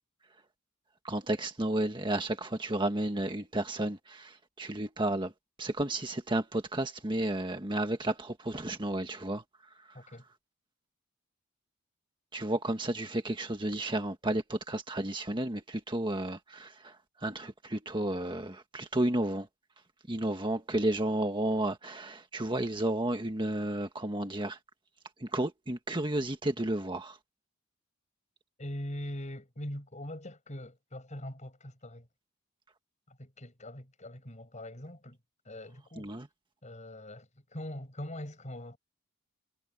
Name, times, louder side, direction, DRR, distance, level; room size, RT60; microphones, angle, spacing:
voice 1, 1.0-5.3 5.6-9.4 12.3-19.5 20.1-24.6 25.2-27.2 36.0-36.3, right 1 dB, 25° right, 1.5 m, -32 dB
voice 2, 28.6-32.1 33.1-35.2 35.4-36.1 36.6-38.8, left 1 dB, 35° left, 7.1 m, -42 dB
head